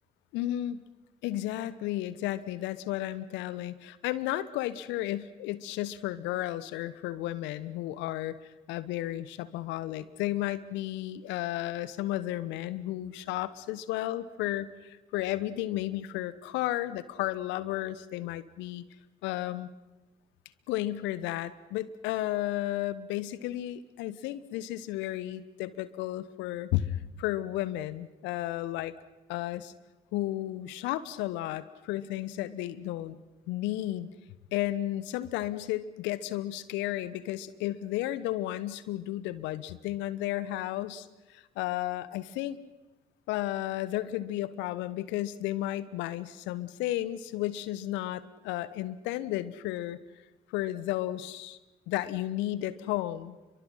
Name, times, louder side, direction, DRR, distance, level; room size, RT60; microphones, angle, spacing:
voice 1, 0.3-0.8 1.2-8.4 8.7-18.8 19.2-19.7 20.7-28.9 29.3-29.7 30.1-33.2 33.5-34.1 34.5-42.6 43.3-50.0 50.5-51.6 51.9-53.4, left 14 dB, 70° left, 16 dB, 1.2 m, -33 dB
30.0 x 23.5 x 5.7 m, 1.1 s
hypercardioid pair, 50°, 20 cm